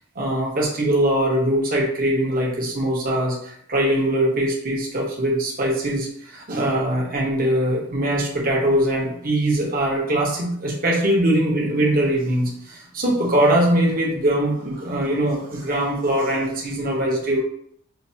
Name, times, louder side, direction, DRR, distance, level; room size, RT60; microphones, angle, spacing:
voice 1, 0.1-17.4, right 1 dB, 45° right, -2 dB, 1.1 m, -22 dB
5.7 x 2.6 x 2.8 m, 0.68 s
head